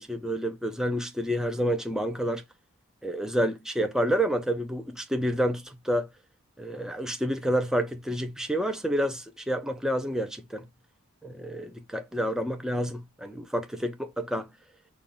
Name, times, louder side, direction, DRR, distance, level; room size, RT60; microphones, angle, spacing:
voice 1, 0.0-2.4 3.0-6.1 6.6-10.7 11.2-14.5, equal, 5° right, 0.4 m, -29 dB
5.3 x 2.3 x 3.7 m
head